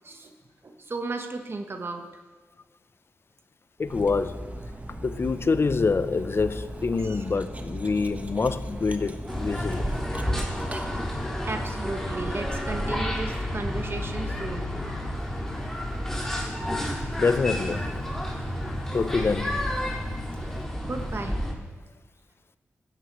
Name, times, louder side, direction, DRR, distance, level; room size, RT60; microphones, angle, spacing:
voice 1, 0.6-2.0 7.0-7.2 11.2-14.8 20.9-21.4, right 3 dB, 50° right, 1.2 m, -34 dB
voice 2, 3.8-4.5 5.0-9.9 17.2-18.0 18.9-19.7, left 4 dB, 50° left, 0.6 m, -26 dB
Cutlery silverware, 3.8-11.5, right 1 dB, 30° right, 1.3 m, -37 dB
sound 1, 9.3-21.5, equal, 10° left, 4.3 m, -30 dB
15.0 x 11.0 x 3.1 m
cardioid pair, 45°, 5 cm